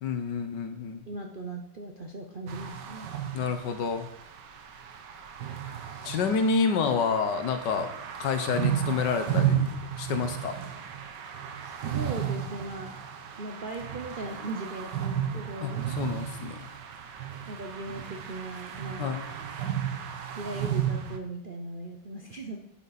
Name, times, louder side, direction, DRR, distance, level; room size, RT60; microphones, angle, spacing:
voice 1, 0.0-1.0 3.3-4.1 6.0-7.9 8.2-9.7 10.0-10.6 15.6-16.6 19.0-19.3, left 5 dB, 70° left, 8 dB, 1.5 m, -28 dB
voice 2, 1.1-3.1 11.6-12.9 13.4-15.9 17.5-19.1 20.4-22.6, right 2 dB, 45° right, 2 dB, 0.7 m, -38 dB
sound 1, 2.5-21.2, right 9 dB, 75° right, 1.5 m, -33 dB
9.3 x 8.1 x 4.1 m, 0.74 s
omnidirectional pair, 2.0 m